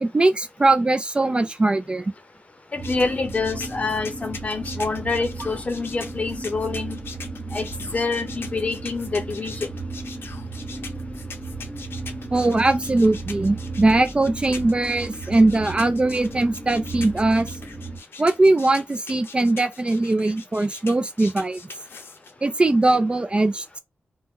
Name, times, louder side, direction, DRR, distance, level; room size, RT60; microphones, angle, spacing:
voice 1, 0.0-2.1 12.3-17.6 18.2-21.6 22.4-23.8, right 2 dB, 25° right, 0.4 m, -20 dB
voice 2, 2.7-7.0 7.5-9.7, left 4 dB, 35° left, 0.7 m, -27 dB
sound 1, 2.8-22.3, left 4 dB, 75° left, 0.6 m, -41 dB
sound 2, 2.8-18.0, right 3 dB, 5° left, 1.2 m, -35 dB
2.6 x 2.1 x 3.6 m
wide cardioid pair, 80°, 4 cm